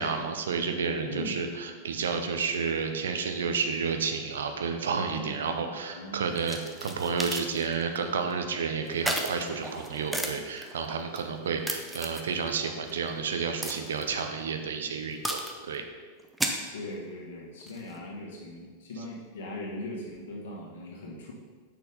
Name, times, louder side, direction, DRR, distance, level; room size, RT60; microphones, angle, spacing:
voice 1, 0.0-15.8, right 5 dB, 65° right, 6 dB, 0.7 m, -31 dB
voice 2, 1.0-1.5 5.1-6.3 16.7-21.3, left 1 dB, 55° left, -3 dB, 1.8 m, -40 dB
sound 1, 6.4-8.0 8.3-8.4 8.8-11.2 11.7-12.6 12.9-13.0 13.6-14.3 15.2-15.8 16.2-16.9 17.6-18.0, right 1 dB, 5° right, 0.7 m, -34 dB
6.1 x 5.8 x 4.0 m, 1.5 s
figure-of-eight pair, 90°, 0 cm